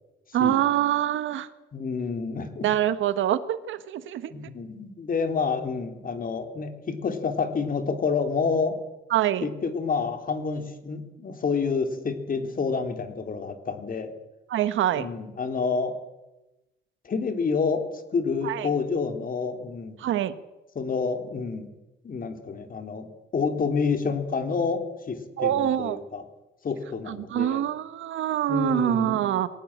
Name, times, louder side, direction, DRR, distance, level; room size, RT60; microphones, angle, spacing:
voice 1, 0.3-1.5 2.6-4.3 9.1-9.5 14.5-15.1 18.4-18.7 20.0-20.3 25.4-26.0 27.1-29.5, right 11 dB, 80° right, 13 dB, 1.4 m, -25 dB
voice 2, 1.7-2.7 4.3-8.8 9.4-14.1 15.0-16.0 17.0-20.0 20.7-21.7 22.0-26.2 26.6-27.6 28.5-29.2, left 5 dB, 45° left, 7 dB, 3.2 m, -28 dB
22.0 x 18.0 x 8.8 m, 1.0 s
cardioid pair, 90°, 20 cm